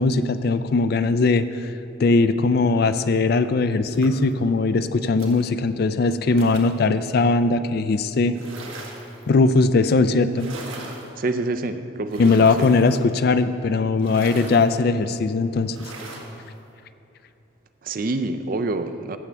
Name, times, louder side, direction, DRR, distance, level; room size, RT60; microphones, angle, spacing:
voice 1, 0.0-1.7 2.0-8.3 9.3-10.5 12.2-15.8, left 3 dB, 50° left, 11 dB, 0.4 m, -20 dB
sound 1, 3.9-4.3 5.2-5.4 6.4-6.8 8.3-9.2 10.3-11.1 12.1-13.0 14.0-14.7 15.7-16.3, right 2 dB, 85° right, 1.4 m, -39 dB
voice 2, 11.2-12.7 17.8-19.2, right 2 dB, 45° right, 9 dB, 0.4 m, -27 dB
15.5 x 7.2 x 3.3 m, 2.9 s
head